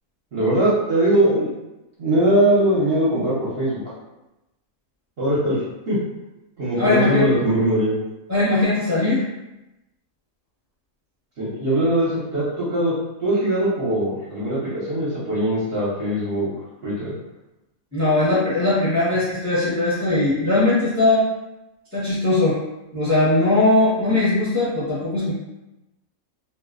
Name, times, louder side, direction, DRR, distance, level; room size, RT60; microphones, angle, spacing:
voice 1, 0.3-1.5 2.0-3.8 5.2-5.6 5.9-6.0 6.6-7.9 11.4-12.9 13.2-16.5 16.8-17.1, right 1 dB, 55° right, -8 dB, 0.8 m, -21 dB
voice 2, 6.8-7.3 8.3-9.2 17.9-21.2 21.9-22.6 22.9-25.3, left 2 dB, 15° left, -9 dB, 0.6 m, -19 dB
2.5 x 2.0 x 2.4 m, 0.96 s
omnidirectional pair, 1.4 m